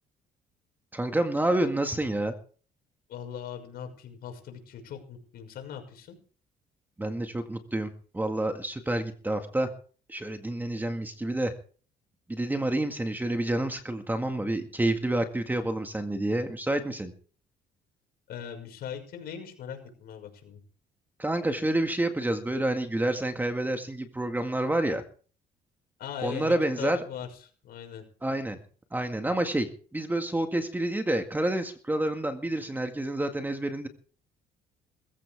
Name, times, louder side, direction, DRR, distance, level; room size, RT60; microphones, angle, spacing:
voice 1, 0.9-2.3 7.0-9.7 10.1-11.5 12.3-17.1 21.2-25.0 26.2-27.0 28.2-28.6 28.9-33.9, right 1 dB, 10° right, 6 dB, 2.0 m, -28 dB
voice 2, 3.1-6.2 18.3-20.6 26.0-28.0, left 8 dB, 65° left, 4 dB, 5.9 m, -40 dB
21.0 x 15.0 x 3.7 m, 0.42 s
cardioid pair, 110°, 17 cm